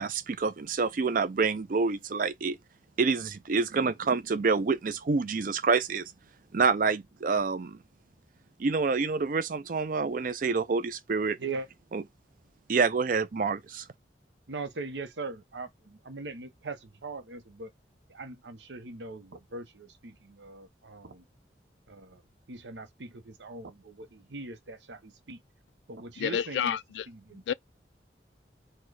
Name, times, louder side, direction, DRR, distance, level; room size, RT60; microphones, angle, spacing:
voice 1, 0.0-2.6 3.0-6.0 6.5-7.8 8.6-11.4 11.9-12.0 12.7-13.8, right 4 dB, 50° right, 0.5 m, -27 dB
voice 2, 14.5-17.7 18.1-21.2 21.9-22.2 22.5-25.4 25.9-26.8 27.1-27.4, right 3 dB, 90° right, 0.8 m, -41 dB
voice 3, 26.2-27.1 27.5-27.6, left 8 dB, 85° left, 0.3 m, -29 dB
4.4 x 2.2 x 4.6 m
head